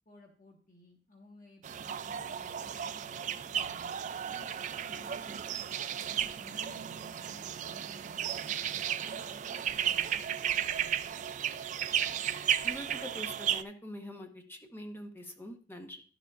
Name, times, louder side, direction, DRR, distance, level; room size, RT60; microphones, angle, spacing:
voice 1, 0.0-5.4 6.0-8.3 9.0-11.1, equal, 45° left, 1 dB, 1.2 m, -56 dB
sound 1, 1.6-13.6, right 9 dB, 40° right, 0.3 m, -34 dB
voice 2, 12.6-16.0, equal, 10° left, 4 dB, 1.0 m, -44 dB
11.5 x 7.1 x 2.4 m, 0.43 s
head